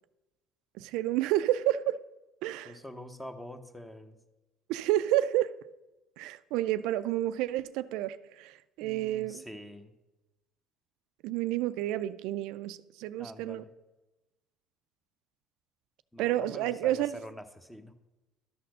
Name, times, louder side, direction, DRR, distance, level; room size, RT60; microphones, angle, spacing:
voice 1, 0.8-2.0 2.4-2.8 4.7-5.6 6.2-9.4 11.2-13.6 16.2-17.2, right 14 dB, 80° right, 0.3 m, -30 dB
voice 2, 2.6-4.2 8.8-9.9 13.2-13.7 16.1-17.9, equal, 5° left, 0.8 m, -45 dB
12.5 x 4.2 x 6.5 m
supercardioid pair, 95°, 0 cm